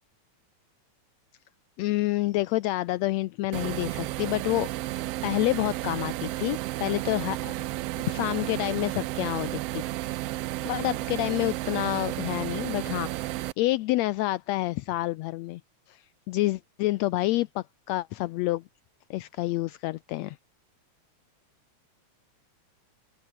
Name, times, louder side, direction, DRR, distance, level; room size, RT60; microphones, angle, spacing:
voice 1, 1.8-7.6 7.9-10.2 10.7-15.6 15.9-18.6 19.1-20.4, left 17 dB, 80° left, 1.7 m, -28 dB
sound 1, 3.5-13.5, right 17 dB, 80° right, 1.4 m, -32 dB
open air
omnidirectional pair, 3.4 m